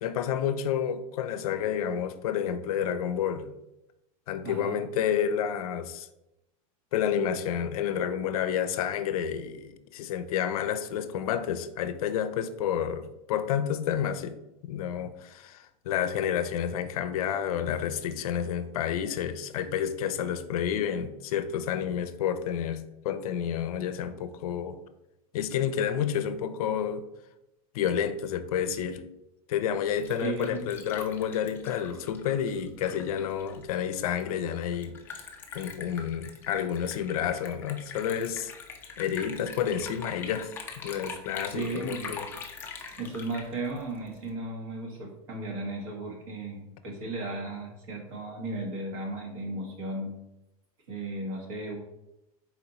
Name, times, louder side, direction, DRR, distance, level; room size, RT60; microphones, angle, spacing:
voice 1, 0.0-3.6 4.3-6.1 6.9-24.8 25.3-27.1 27.7-29.0 29.5-35.2 35.5-38.5 39.0-42.3, left 9 dB, 80° left, 0.5 m, -30 dB
voice 2, 4.4-4.8 30.2-30.7 41.5-42.2 43.0-50.1 50.9-51.8, right 2 dB, 60° right, 1.4 m, -35 dB
Liquid, 29.7-44.3, left 5 dB, 10° left, 0.3 m, -43 dB
4.1 x 2.9 x 4.1 m
supercardioid pair, 165°, 18 cm